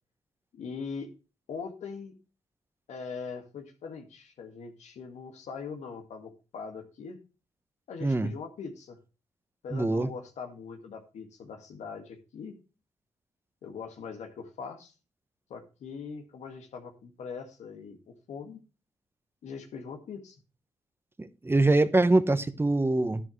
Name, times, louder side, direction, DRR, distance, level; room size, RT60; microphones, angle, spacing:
voice 1, 0.5-1.1 1.5-2.1 2.9-7.2 7.9-9.0 9.6-12.6 13.6-14.9 15.5-18.6 19.4-20.4, left 5 dB, 80° left, 1.9 m, -41 dB
voice 2, 9.7-10.1 21.2-23.2, right 2 dB, 20° right, 1.0 m, -24 dB
11.0 x 10.5 x 3.2 m
cardioid pair, 60°, 12 cm